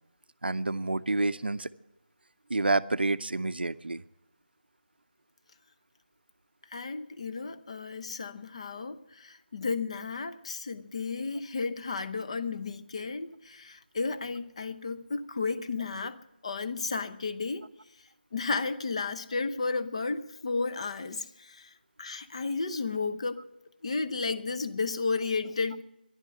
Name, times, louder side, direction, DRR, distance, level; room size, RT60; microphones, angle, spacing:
voice 1, 0.4-1.7 2.5-4.0, right 2 dB, 75° right, 0.6 m, -28 dB
voice 2, 6.7-16.2 16.4-17.6 18.3-21.7 22.0-23.4 23.8-25.8, left 4 dB, 35° left, 0.8 m, -33 dB
12.0 x 11.0 x 9.7 m
figure-of-eight pair, 165°, 5 cm